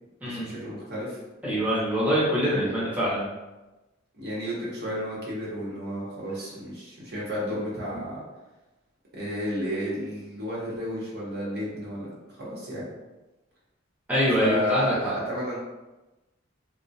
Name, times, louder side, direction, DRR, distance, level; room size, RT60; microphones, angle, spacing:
voice 1, 0.2-1.2 2.4-2.9 4.1-8.2 9.1-12.9 14.4-15.6, left 1 dB, 55° right, -7 dB, 0.9 m, -32 dB
voice 2, 1.4-3.3 14.1-15.2, equal, 10° right, -9 dB, 0.7 m, -24 dB
2.2 x 2.1 x 2.6 m, 1.1 s
head